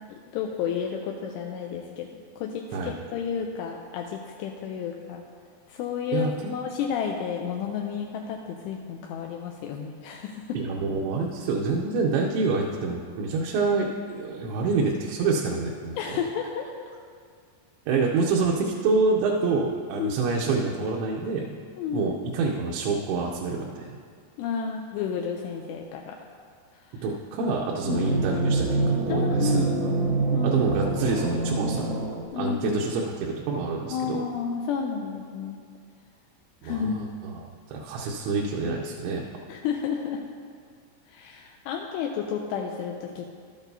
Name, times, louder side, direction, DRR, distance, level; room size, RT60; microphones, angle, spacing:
voice 1, 0.1-2.1 2.4-5.2 5.7-10.6 16.0-16.7 20.0-20.2 21.8-22.1 24.4-26.2 26.7-27.0 27.9-28.1 29.1-30.0 30.3-30.6 32.3-32.8 33.9-35.6 36.6-37.0 39.5-40.2 41.1-43.3, left 7 dB, 85° left, 1 dB, 2.6 m, -31 dB
voice 2, 6.1-6.5 10.5-16.0 17.9-21.5 21.9-23.9 27.0-29.6 30.4-31.9 32.4-34.2 36.6-39.2, right 4 dB, 85° right, -2 dB, 3.0 m, -27 dB
sound 1, 27.7-32.2, right 3 dB, 70° right, 1.4 m, -26 dB
12.5 x 8.9 x 2.7 m, 2.1 s
omnidirectional pair, 5.1 m